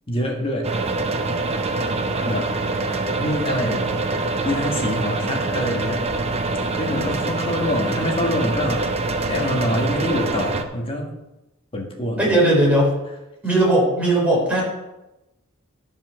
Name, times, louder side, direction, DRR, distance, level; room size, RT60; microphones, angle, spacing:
voice 1, 0.1-0.7 2.2-2.5 3.2-3.8 4.4-6.0 6.8-8.9 9.3-11.1 11.7-12.4, left 1 dB, 25° left, 1 dB, 1.6 m, -25 dB
sound 1, 0.6-10.6, right 3 dB, 30° right, 0.8 m, -25 dB
voice 2, 12.2-13.0 13.4-14.6, right 1 dB, 5° right, -4 dB, 3.9 m, -18 dB
12.0 x 5.5 x 5.8 m, 0.98 s
head